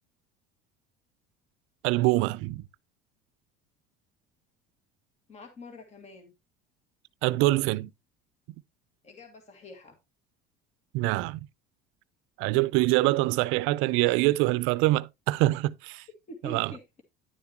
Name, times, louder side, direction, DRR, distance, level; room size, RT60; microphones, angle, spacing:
voice 1, 1.8-2.6 7.2-7.9 10.9-11.5 12.4-16.0 16.4-16.7, right 19 dB, 75° right, 0.6 m, -25 dB
voice 2, 5.3-6.3 9.0-10.0 16.3-17.0, equal, 30° left, 1.9 m, -45 dB
10.5 x 7.2 x 2.9 m
cardioid pair, 115°, 21 cm